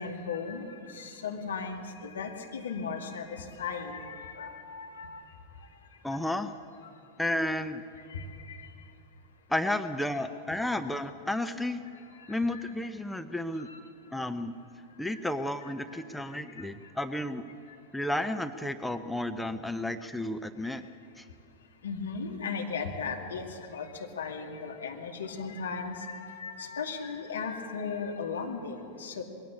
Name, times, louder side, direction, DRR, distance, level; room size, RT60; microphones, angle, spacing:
voice 1, 0.0-5.2 8.1-8.7 11.4-11.5 12.2-12.6 13.7-13.8 15.9-16.0 21.8-29.2, left 5 dB, 70° left, 2 dB, 2.3 m, -37 dB
voice 2, 6.0-6.6 7.2-7.8 9.5-11.8 12.3-13.7 14.1-14.5 15.0-17.4 17.9-20.9 21.2-21.3, left 1 dB, 5° left, 9 dB, 0.7 m, -32 dB
21.0 x 16.5 x 8.7 m, 2.5 s
figure-of-eight pair, 90°, 0 cm